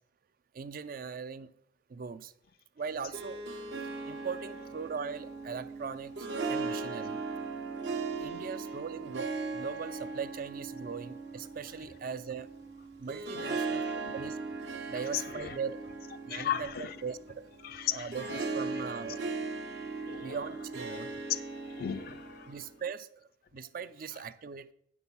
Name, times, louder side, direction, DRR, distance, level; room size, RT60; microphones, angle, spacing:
voice 1, 0.5-1.5 1.9-2.3 2.8-3.4 4.1-7.2 8.2-12.5 13.0-13.8 14.1-14.4 14.9-15.8 16.3-17.5 17.9-19.2 20.2-21.1 22.5-24.7, right 6 dB, 50° right, 0.4 m, -40 dB
Harp, 2.9-22.7, right 4 dB, 80° right, 1.3 m, -38 dB
voice 2, 13.3-14.2 15.0-15.6 16.3-17.0 17.6-18.4 20.0-20.4 21.6-22.5, left 9 dB, 55° left, 0.5 m, -37 dB
8.9 x 6.2 x 5.4 m
head